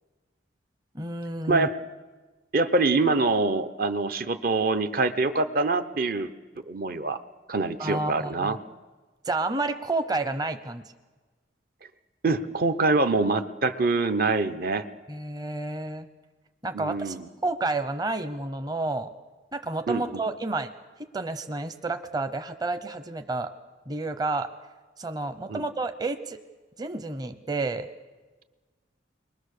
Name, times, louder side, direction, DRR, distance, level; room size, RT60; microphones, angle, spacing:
voice 1, 0.9-1.7 7.8-8.6 9.2-10.9 15.1-16.1 16.6-17.2 17.4-19.1 19.5-20.7 21.0-23.5 23.9-24.5 25.0-26.4 26.8-27.9, right 2 dB, 20° right, 9 dB, 0.8 m, -30 dB
voice 2, 2.5-6.3 6.7-7.2 7.5-8.6 12.2-14.9 16.7-17.3 19.9-20.0 25.5-25.6, right 3 dB, 50° right, 10 dB, 0.8 m, -25 dB
29.5 x 22.0 x 6.7 m, 1.3 s
head